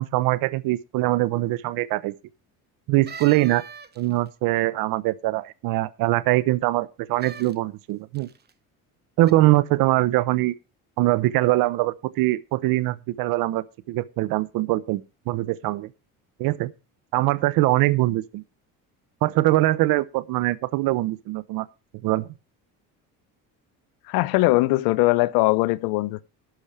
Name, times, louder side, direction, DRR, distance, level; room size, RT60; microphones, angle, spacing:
voice 1, 0.0-2.1 2.9-3.6 4.0-8.3 9.2-10.5 11.0-15.9 16.4-16.7 17.1-18.4 19.2-21.7 22.0-22.3, right 18 dB, 75° right, 0.8 m, -22 dB
sound 1, 3.1-4.3 7.2-7.6 8.2-8.5 9.2-9.3, right 6 dB, 30° right, 1.0 m, -41 dB
voice 2, 24.1-26.2, left 20 dB, 90° left, 0.7 m, -20 dB
12.5 x 5.0 x 7.1 m
cardioid pair, 115°, 35 cm